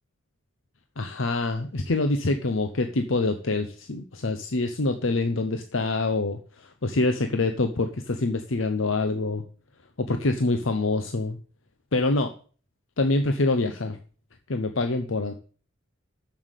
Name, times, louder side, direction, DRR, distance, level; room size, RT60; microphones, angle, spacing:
voice 1, 1.0-6.4 6.8-9.4 10.0-11.4 11.9-12.3 13.0-14.0 14.5-15.3, left 2 dB, 80° left, 7 dB, 0.9 m, -25 dB
7.4 x 7.2 x 8.2 m, 0.42 s
head